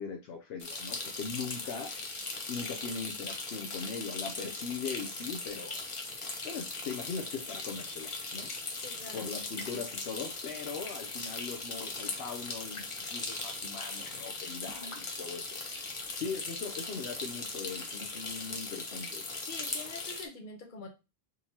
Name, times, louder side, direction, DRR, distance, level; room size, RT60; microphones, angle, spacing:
voice 1, 0.0-1.9 2.5-5.8 6.4-8.5 9.1-15.6 16.1-19.2, left 5 dB, 80° left, 3 dB, 0.8 m, -40 dB
sound 1, 0.6-20.3, left 3 dB, 35° left, 0.6 m, -39 dB
voice 2, 8.8-9.3 14.6-14.9 19.5-20.9, left 3 dB, 55° left, 3 dB, 1.0 m, -45 dB
3.8 x 2.8 x 2.9 m, 0.28 s
omnidirectional pair, 1.0 m